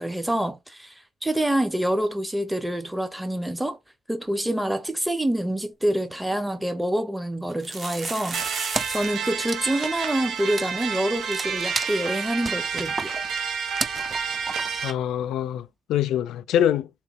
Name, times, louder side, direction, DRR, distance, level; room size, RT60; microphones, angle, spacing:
voice 1, 0.0-3.8 4.1-13.2, right 1 dB, 5° right, 0.8 m, -27 dB
sound 1, 5.9-6.0 6.3-6.4 7.5-9.3 9.5-9.6 9.8-10.1 10.6-10.7 11.0-11.1 13.2-13.3, right 4 dB, 45° right, 1.3 m, -34 dB
sound 2, 8.3-14.9, right 6 dB, 75° right, 0.9 m, -30 dB
Wood, 8.7-9.1 9.4-15.0, right 3 dB, 25° right, 0.4 m, -34 dB
voice 2, 14.8-16.9, left 10 dB, 85° left, 0.3 m, -24 dB
3.7 x 2.7 x 3.5 m
cardioid pair, 90°, 0 cm